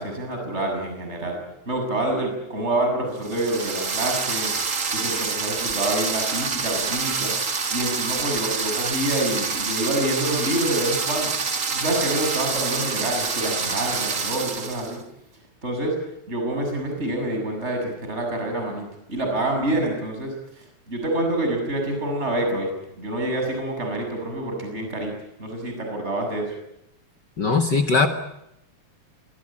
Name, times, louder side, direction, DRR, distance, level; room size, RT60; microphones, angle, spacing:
voice 1, 0.0-4.5 4.9-7.3 7.7-11.3 11.7-15.0 15.6-16.0 16.3-22.7 23.0-25.1 25.4-26.5, right 1 dB, 15° right, 3 dB, 7.2 m, -27 dB
sound 1, 3.2-15.0, right 5 dB, 75° right, 0.7 m, -27 dB
voice 2, 27.4-28.1, left 4 dB, 50° left, 7 dB, 1.3 m, -19 dB
26.0 x 23.0 x 8.8 m, 0.81 s
omnidirectional pair, 4.3 m